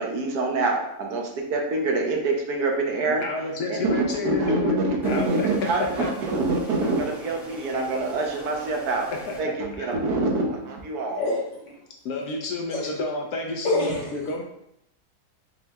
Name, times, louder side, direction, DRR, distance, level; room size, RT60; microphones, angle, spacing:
voice 1, 0.0-3.2 3.7-9.1 9.4-11.2, right 2 dB, 70° right, 1 dB, 1.1 m, -25 dB
voice 2, 3.0-4.8 5.0-5.5 5.8-6.1 9.3-9.9 12.0-14.4, left 3 dB, 70° left, 1 dB, 1.0 m, -30 dB
sound 1, 5.0-9.4, right 2 dB, ahead, 0.5 m, -43 dB
voice 3, 11.1-11.8 12.7-12.9 13.6-14.1, left 2 dB, 50° left, -3 dB, 1.3 m, -26 dB
5.4 x 2.1 x 3.4 m, 0.78 s
omnidirectional pair, 1.8 m